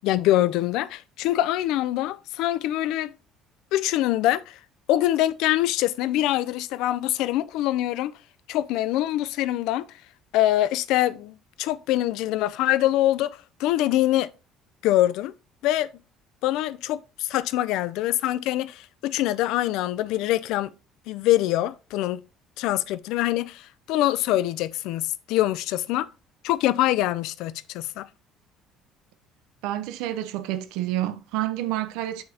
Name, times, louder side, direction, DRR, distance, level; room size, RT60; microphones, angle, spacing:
voice 1, 0.0-3.1 3.7-4.6 4.9-8.1 8.5-9.9 10.3-14.3 14.8-15.3 15.6-15.9 16.4-20.7 21.1-22.2 22.6-26.1 26.4-28.1, left 14 dB, 75° left, 0.4 m, -24 dB
voice 2, 29.6-32.2, right 14 dB, 90° right, 0.6 m, -29 dB
7.0 x 6.5 x 2.8 m
cardioid pair, 150°, 0 cm